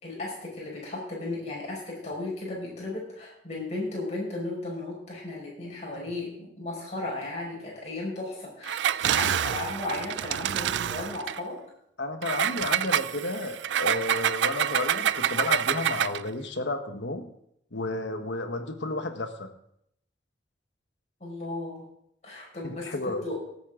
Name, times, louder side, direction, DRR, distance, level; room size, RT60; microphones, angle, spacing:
voice 1, 0.0-11.6 21.2-21.9 22.2-23.4, left 2 dB, 35° left, -4 dB, 5.6 m, -35 dB
Engine, 8.6-11.4 12.2-16.3, right 10 dB, 80° right, 0.3 m, -27 dB
voice 2, 12.0-17.3 17.7-19.5 22.6-23.2, left 2 dB, 85° left, 7 dB, 1.3 m, -32 dB
19.0 x 8.6 x 3.8 m, 0.74 s
head